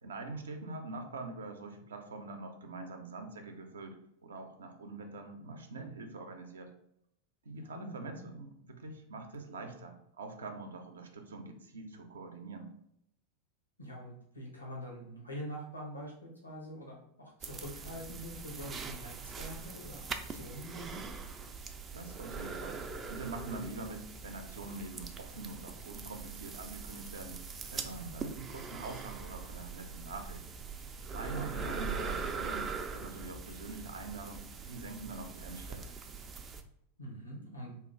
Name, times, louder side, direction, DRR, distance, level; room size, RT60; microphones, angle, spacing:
voice 1, 0.0-6.7 7.4-12.7 21.9-22.8 23.1-27.4 27.7-30.4 31.1-36.0, right 3 dB, 70° right, 6 dB, 0.5 m, -44 dB
voice 2, 7.5-8.3 13.8-21.1 31.3-31.7 37.0-37.7, equal, 85° left, -2 dB, 0.9 m, -45 dB
sound 1, 17.4-36.6, right 5 dB, 25° right, 0.3 m, -42 dB
3.5 x 2.4 x 4.3 m, 0.75 s
figure-of-eight pair, 90°, 0 cm